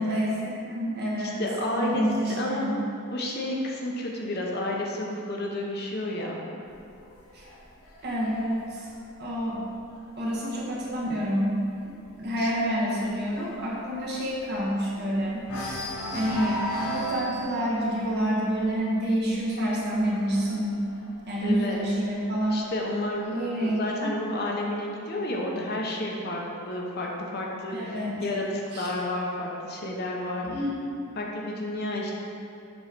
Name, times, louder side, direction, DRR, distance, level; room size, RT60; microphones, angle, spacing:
voice 1, 0.0-1.4 1.7-2.8 7.3-7.4 8.0-8.9 9.2-9.7 10.2-15.5 16.1-20.9 21.3-22.6 23.3-24.1 27.7-28.1 28.7-28.9 30.5-30.8, equal, 50° right, -5 dB, 1.3 m, -28 dB
voice 2, 1.2-2.0 2.4-2.7 3.1-6.4 12.4-12.5 21.4-21.8 22.5-23.4 23.6-27.9 28.2-30.5 31.1-32.1, left 1 dB, 50° left, -2 dB, 0.8 m, -31 dB
sound 1, 6.7-10.3 10.7-11.0 11.3-11.4 11.8-15.1 15.4-22.0 22.8-23.8, equal, 85° left, 0.8 m, -37 dB
7.1 x 3.1 x 5.1 m, 2.6 s
head